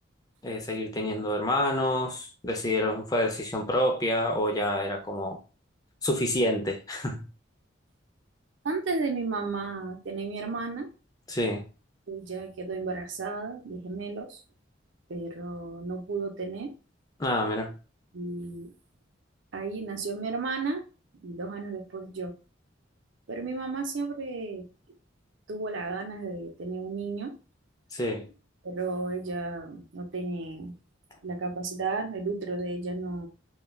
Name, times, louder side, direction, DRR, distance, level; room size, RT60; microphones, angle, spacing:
voice 1, 0.4-5.4 6.0-7.3 11.3-11.6 17.2-17.7 27.9-28.3, left 1 dB, 20° left, 0.5 m, -28 dB
voice 2, 8.6-10.9 12.1-14.4 15.1-16.7 18.1-18.7 19.5-20.8 21.2-22.4 23.3-24.7 25.5-27.3 28.6-30.7 31.2-33.3, right 3 dB, 75° right, 0.6 m, -33 dB
3.1 x 2.3 x 2.3 m
head